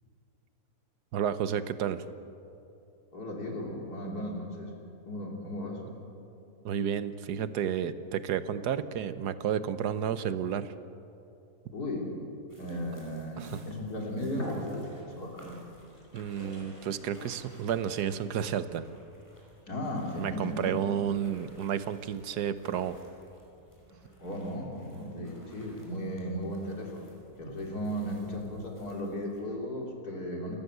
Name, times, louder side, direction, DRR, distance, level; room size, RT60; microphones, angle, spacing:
voice 1, 1.1-2.0 6.6-10.7 13.4-13.6 16.1-18.8 20.2-23.0, right 8 dB, 90° right, 13 dB, 1.4 m, -31 dB
voice 2, 3.1-4.7 5.1-5.8 11.7-12.1 12.6-15.6 19.7-20.8 24.2-27.1 27.4-30.6, equal, 75° left, 0 dB, 4.0 m, -36 dB
sound 1, 12.5-29.4, equal, 10° left, 5.1 m, -58 dB
sound 2, 13.8-13.9 14.3-15.3 15.9-18.7, left 1 dB, 45° left, 4.9 m, -45 dB
29.0 x 14.5 x 8.1 m, 2.8 s
omnidirectional pair, 1.7 m